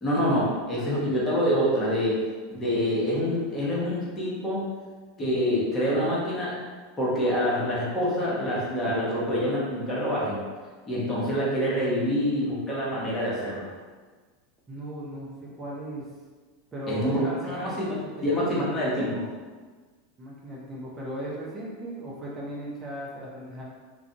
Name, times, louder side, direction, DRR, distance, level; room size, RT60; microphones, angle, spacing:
voice 1, 0.0-2.2 2.5-4.6 5.2-6.5 7.0-10.4 10.8-13.7 16.9-19.2, equal, 20° left, -7 dB, 1.0 m, -26 dB
voice 2, 14.7-16.1 16.7-17.8 18.1-18.4 20.2-23.6, right 1 dB, 20° right, -5 dB, 0.6 m, -37 dB
2.4 x 2.2 x 2.7 m, 1.4 s
figure-of-eight pair, 85°, 0 cm